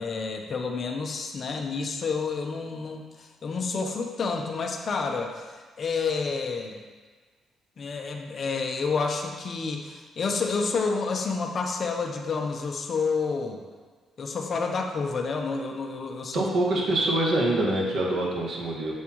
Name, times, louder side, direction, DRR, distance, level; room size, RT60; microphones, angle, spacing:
voice 1, 0.0-6.8 7.8-13.6 14.2-16.5, left 4 dB, 50° left, 3 dB, 0.9 m, -29 dB
voice 2, 16.3-18.9, right 1 dB, 60° right, -2 dB, 1.9 m, -25 dB
8.1 x 7.3 x 3.1 m, 1.4 s
cardioid pair, 90°, 0 cm